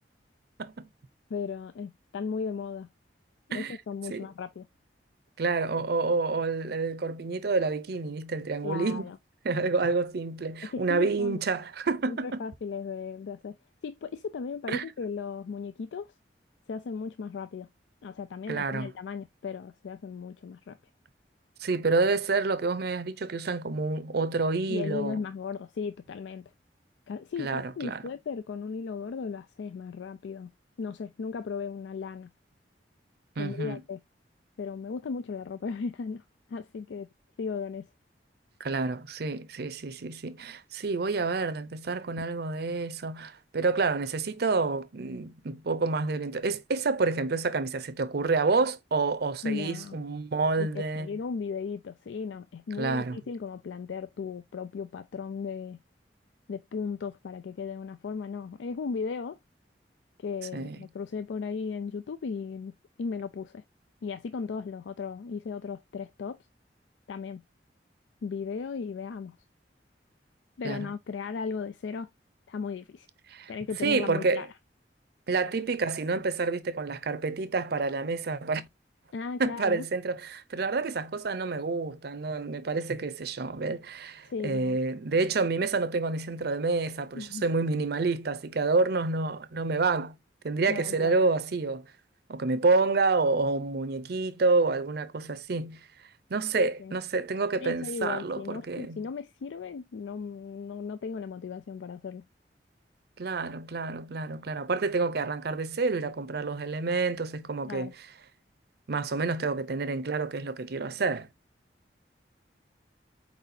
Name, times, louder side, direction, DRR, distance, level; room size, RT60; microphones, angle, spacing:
voice 1, 1.3-2.9 3.5-4.7 8.6-9.2 10.7-11.4 12.1-13.6 13.8-16.1 16.7-17.7 18.0-20.8 24.7-26.5 27.1-30.5 30.8-32.3 33.4-34.0 34.6-36.2 36.5-37.1 37.4-37.9 49.4-50.0 50.6-55.8 56.5-59.4 60.2-62.7 63.0-63.6 64.0-66.4 67.1-67.4 68.2-69.4 70.6-72.1 72.5-73.1 73.5-74.5 79.1-79.8 84.3-84.8 87.2-87.4 90.7-91.2 96.5-96.9 97.6-102.3 107.6-107.9, left 5 dB, 90° left, 0.4 m, -36 dB
voice 2, 5.4-9.1 9.4-12.3 14.7-14.9 18.5-18.9 21.6-25.2 27.4-28.0 33.4-33.8 38.6-51.1 52.8-53.2 60.5-60.8 70.6-70.9 73.3-73.5 73.8-74.5 75.3-78.7 79.4-90.1 90.4-91.8 92.3-95.8 96.3-99.0 103.2-108.1 108.9-111.3, right 3 dB, 60° right, 0.6 m, -28 dB
4.7 x 4.1 x 2.6 m
head